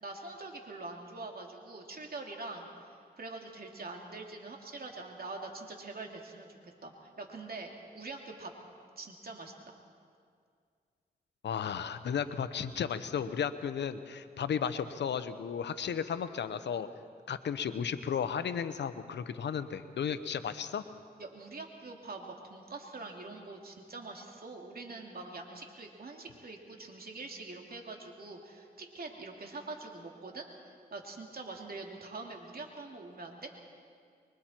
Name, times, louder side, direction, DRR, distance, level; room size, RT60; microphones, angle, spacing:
voice 1, 0.0-8.5 9.0-9.7 21.2-30.5 30.9-33.6, right 3 dB, 60° right, 1 dB, 2.8 m, -44 dB
voice 2, 11.4-16.9 17.3-20.8, left 7 dB, 85° left, 12 dB, 0.9 m, -34 dB
25.0 x 23.0 x 4.5 m, 2.2 s
cardioid pair, 55°, 18 cm